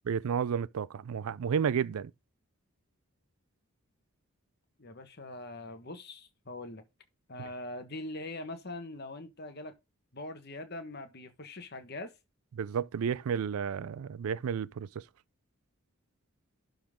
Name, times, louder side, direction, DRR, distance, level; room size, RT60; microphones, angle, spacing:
voice 1, 0.1-2.1 12.6-15.0, right 7 dB, 75° right, 0.4 m, -31 dB
voice 2, 4.8-6.8 7.3-9.8 10.1-12.1, left 2 dB, 45° left, 1.3 m, -42 dB
11.5 x 3.9 x 3.7 m
head